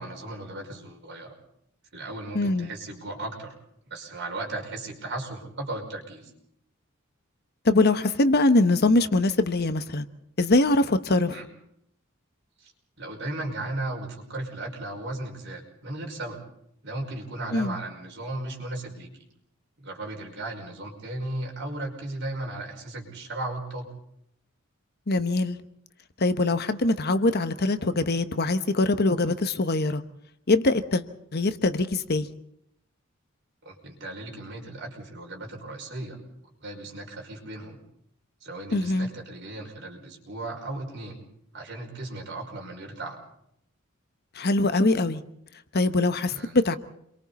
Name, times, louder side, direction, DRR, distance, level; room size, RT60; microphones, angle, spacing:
voice 1, 0.0-1.3 1.9-3.5 3.9-6.3 11.3-11.4 12.6-12.7 13.0-16.4 16.8-19.1 19.8-23.9 33.6-36.2 36.6-37.8 38.4-41.2 41.5-43.2 46.3-46.6, right 2 dB, 60° right, 1 dB, 5.4 m, -36 dB
voice 2, 2.3-2.7 7.6-10.1 10.4-11.4 17.5-17.8 25.1-25.6 26.2-30.0 30.5-31.0 31.3-32.3 38.7-39.1 44.3-45.2 45.7-46.8, left 2 dB, 50° left, 10 dB, 1.0 m, -23 dB
29.0 x 23.0 x 4.2 m, 0.73 s
head